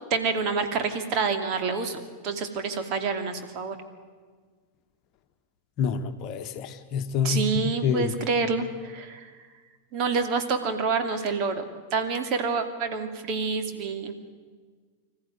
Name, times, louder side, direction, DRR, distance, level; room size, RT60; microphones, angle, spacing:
voice 1, 0.1-3.8 7.2-9.3 9.9-14.2, right 4 dB, 40° right, 7 dB, 2.4 m, -28 dB
voice 2, 5.8-7.4 7.8-8.1, left 7 dB, 40° left, 7 dB, 1.3 m, -27 dB
25.5 x 14.5 x 9.6 m, 1.5 s
figure-of-eight pair, 90°, 0 cm